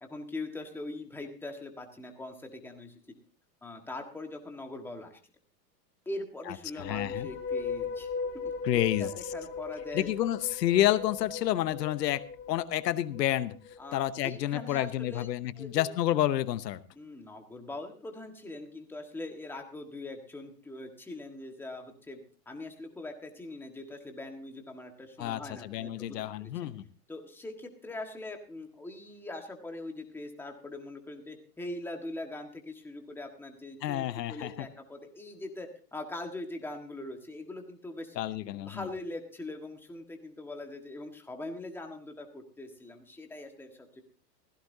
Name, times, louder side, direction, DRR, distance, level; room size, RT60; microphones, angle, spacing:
voice 1, 0.0-2.9 3.6-5.2 6.0-8.1 8.4-10.1 13.8-15.3 15.6-15.8 16.9-22.2 22.4-26.7 27.1-38.2 38.5-44.0, left 2 dB, 5° left, 3 dB, 1.6 m, -42 dB
voice 2, 6.5-7.3 8.6-9.1 9.9-12.2 12.5-13.6 13.9-16.8 25.2-26.9 33.8-34.5 38.2-38.9, left 13 dB, 75° left, 14 dB, 1.0 m, -29 dB
sound 1, 6.7-14.0, left 5 dB, 25° left, 2.7 m, -38 dB
16.0 x 15.5 x 2.7 m, 0.41 s
hypercardioid pair, 145°, 49 cm